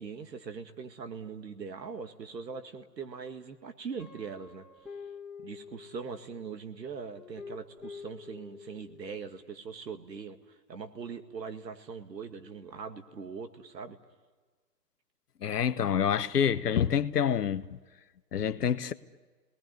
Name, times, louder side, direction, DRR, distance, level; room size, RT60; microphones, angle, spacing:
voice 1, 0.0-4.7 5.4-14.0, right 5 dB, 80° right, 2.1 m, -41 dB
Guitar, 4.0-6.4 7.1-9.1, left 5 dB, ahead, 1.9 m, -47 dB
voice 2, 15.4-17.8 18.3-18.9, left 8 dB, 70° left, 1.1 m, -27 dB
29.5 x 20.0 x 9.5 m
hypercardioid pair, 155°, 50 cm